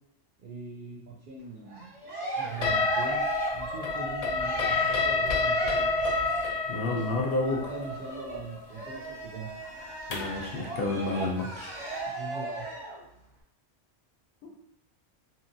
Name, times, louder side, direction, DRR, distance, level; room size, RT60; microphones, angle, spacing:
voice 1, 0.4-1.9 2.4-3.3 3.5-5.9 6.8-7.1 7.5-9.5 12.1-12.7, right 3 dB, 60° right, -3 dB, 0.6 m, -41 dB
Cheering, 1.7-6.7 7.4-13.0, right 2 dB, 85° right, 1.2 m, -36 dB
sound 1, 2.6-10.4, left 4 dB, 90° left, 0.3 m, -29 dB
voice 2, 6.7-7.7 10.1-11.8, left 2 dB, 65° left, 0 dB, 0.7 m, -30 dB
2.8 x 2.7 x 2.5 m, 0.76 s
omnidirectional pair, 1.2 m